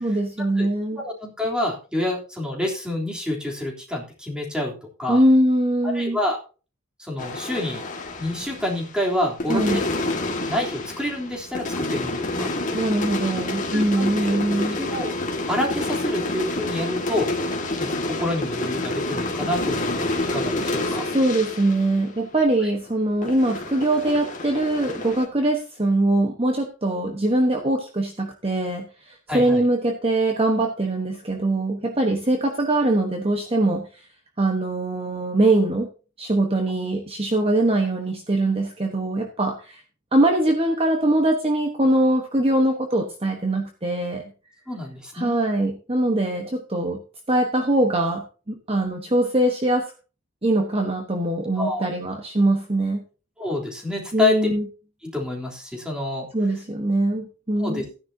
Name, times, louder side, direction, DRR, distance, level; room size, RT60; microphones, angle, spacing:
voice 1, 0.0-1.0 5.1-6.2 9.5-9.8 12.7-14.8 20.9-34.0 34.4-35.9 36.2-39.8 40.1-44.2 45.1-47.0 47.3-49.9 50.4-53.0 54.1-54.6 56.3-57.8, right 1 dB, 25° right, 3 dB, 1.2 m, -22 dB
voice 2, 1.0-5.2 5.9-6.4 7.0-7.8 8.2-9.8 10.5-12.5 13.7-14.4 14.7-15.1 15.5-17.3 17.7-21.1 29.3-29.6 44.7-45.4 51.6-51.9 53.4-54.5 55.0-56.3 57.6-57.8, left 1 dB, 5° right, -2 dB, 3.3 m, -28 dB
sound 1, 7.2-9.1 9.4-22.9 23.2-25.3, left 2 dB, 35° left, 2.0 m, -28 dB
15.0 x 10.5 x 2.8 m, 0.35 s
head